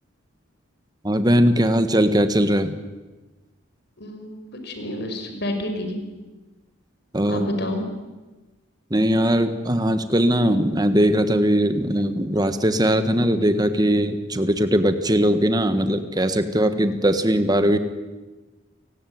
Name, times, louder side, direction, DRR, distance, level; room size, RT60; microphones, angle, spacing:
voice 1, 1.0-2.7 7.1-7.5 8.9-17.8, equal, 20° right, 9 dB, 1.5 m, -20 dB
voice 2, 4.0-4.4 4.6-6.0 7.3-7.9, left 1 dB, 55° left, 5 dB, 5.4 m, -29 dB
29.0 x 18.5 x 9.5 m, 1.2 s
head